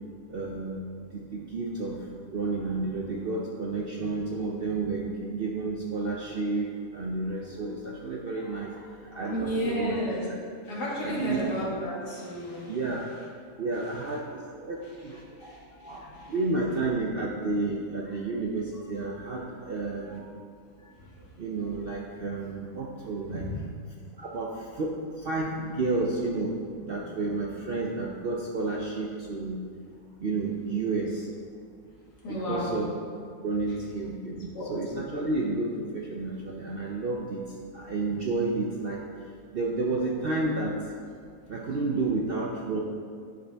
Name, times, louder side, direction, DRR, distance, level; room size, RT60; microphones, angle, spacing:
voice 1, 0.3-10.0 11.0-11.4 12.7-13.1 13.6-20.4 20.8-20.9 21.4-23.5 24.2-29.6 30.2-31.3 32.3-32.9 33.4-40.9 41.5-42.8, right 3 dB, 65° right, -1 dB, 0.5 m, -31 dB
voice 2, 9.2-10.2 10.7-12.8 15.4-16.3 21.0-21.1 23.3-23.6 32.2-32.7 34.5-34.7, equal, 90° left, -6 dB, 2.4 m, -32 dB
10.0 x 5.3 x 3.4 m, 2.2 s
omnidirectional pair, 1.7 m